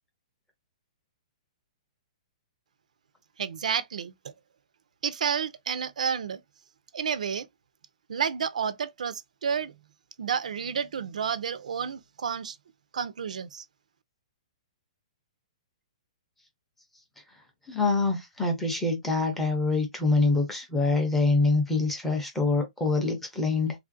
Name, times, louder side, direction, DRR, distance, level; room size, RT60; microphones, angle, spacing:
voice 1, 3.4-4.1 5.0-6.4 6.9-7.5 8.1-9.7 10.2-12.5 12.9-13.6, right 7 dB, 90° right, 0.4 m, -30 dB
voice 2, 17.7-23.7, left 3 dB, 5° left, 0.5 m, -25 dB
3.1 x 2.4 x 2.4 m
hypercardioid pair, 180°, 4 cm